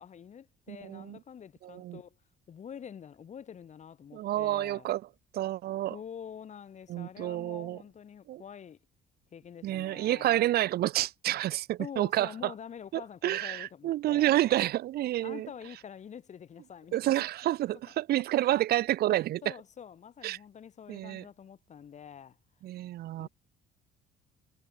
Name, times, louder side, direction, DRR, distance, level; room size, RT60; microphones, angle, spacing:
voice 1, 0.0-2.2 2.5-4.9 5.9-8.8 9.3-10.4 11.8-14.5 15.2-17.2 19.4-22.4 23.2-23.3, left 8 dB, 45° left, 4.1 m, -46 dB
voice 2, 0.7-1.2 1.6-2.0 4.1-5.0 5.3-6.0 6.9-7.8 8.3-8.4 9.6-12.5 12.9-15.5 16.9-19.4 20.2-20.4 20.9-21.2 22.6-23.3, right 14 dB, 70° right, 1.4 m, -29 dB
cardioid pair, 110°, 17 cm